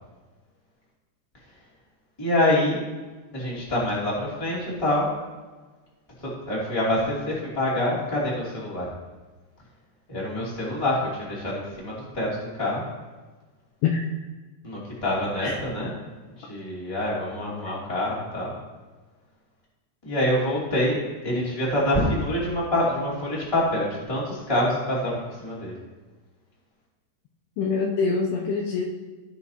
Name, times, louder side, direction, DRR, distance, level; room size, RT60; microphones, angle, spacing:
voice 1, 2.2-2.8 3.3-5.1 6.2-8.9 10.1-12.8 14.6-15.9 16.4-18.5 20.0-21.0 21.2-25.7, left 1 dB, 10° left, -6 dB, 1.6 m, -26 dB
voice 2, 27.6-28.9, left 5 dB, 85° left, 0 dB, 2.4 m, -24 dB
17.0 x 5.9 x 2.9 m, 1.3 s
omnidirectional pair, 5.4 m